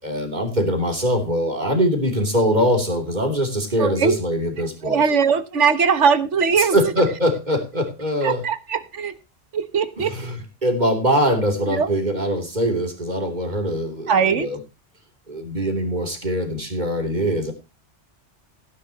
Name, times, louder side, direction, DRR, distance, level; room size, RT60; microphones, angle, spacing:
voice 1, 0.0-5.0 6.6-8.4 10.0-14.6 15.3-17.5, equal, 40° right, 6 dB, 3.4 m, -22 dB
voice 2, 3.8-4.2 4.8-6.7 8.2-9.1 9.5-10.2 11.7-11.9 14.1-14.5, right 6 dB, 80° right, 13 dB, 1.6 m, -20 dB
17.0 x 10.0 x 2.9 m, 0.28 s
omnidirectional pair, 1.2 m